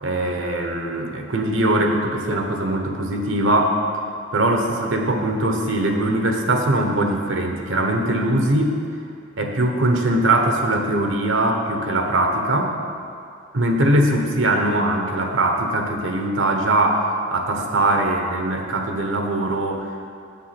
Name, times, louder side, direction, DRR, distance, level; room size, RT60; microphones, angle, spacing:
voice 1, 0.0-3.8 4.3-8.8 9.4-12.8 13.5-20.1, right 1 dB, 85° right, 3 dB, 1.0 m, -21 dB
7.7 x 7.3 x 5.9 m, 2.4 s
head